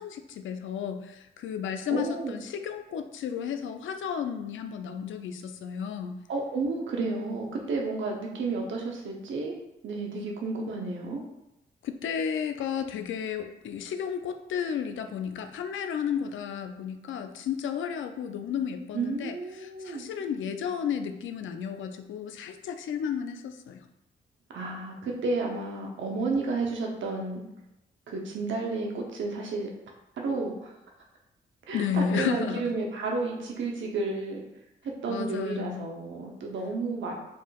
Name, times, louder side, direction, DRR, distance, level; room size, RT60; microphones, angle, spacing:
voice 1, 0.0-6.2 11.8-23.8 31.7-32.6 35.1-35.9, left 7 dB, 70° left, 7 dB, 0.4 m, -33 dB
voice 2, 1.9-2.4 6.3-9.6 9.8-11.2 18.9-20.0 24.5-27.4 28.1-29.7 30.2-30.8 31.7-34.4 34.8-37.1, right 3 dB, 70° right, 0 dB, 0.8 m, -31 dB
4.4 x 3.0 x 2.3 m, 0.87 s
supercardioid pair, 50°, 21 cm